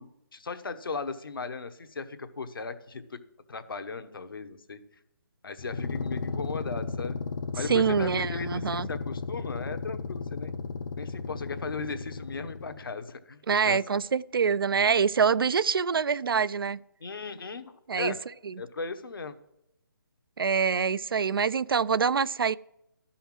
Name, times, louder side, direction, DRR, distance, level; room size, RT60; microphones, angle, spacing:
voice 1, 0.0-3.2 3.5-4.8 5.4-7.2 7.5-10.6 11.0-13.4 13.6-14.0 17.0-18.2 18.6-19.3, left 4 dB, 80° left, 1.1 m, -37 dB
sound 1, 5.6-12.9, left 4 dB, 55° left, 0.8 m, -34 dB
voice 2, 7.7-8.9 13.5-16.8 17.9-18.1 18.5-18.6 20.4-22.6, right 6 dB, 80° right, 0.4 m, -25 dB
11.5 x 5.7 x 7.5 m
hypercardioid pair, 160°, 12 cm